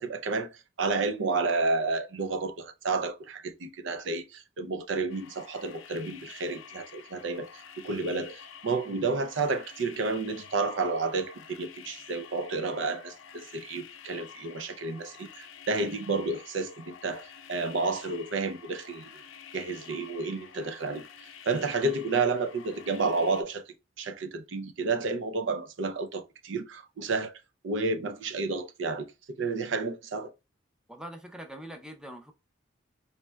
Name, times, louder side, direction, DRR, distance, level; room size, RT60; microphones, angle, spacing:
voice 1, 0.0-19.1 19.5-23.6 24.0-27.3 27.6-29.1 29.4-30.3, right 3 dB, 65° right, 0.5 m, -31 dB
sound 1, 5.1-23.4, left 8 dB, 80° left, 0.5 m, -49 dB
voice 2, 30.9-32.4, right 1 dB, 5° right, 0.5 m, -43 dB
4.2 x 3.2 x 2.2 m
head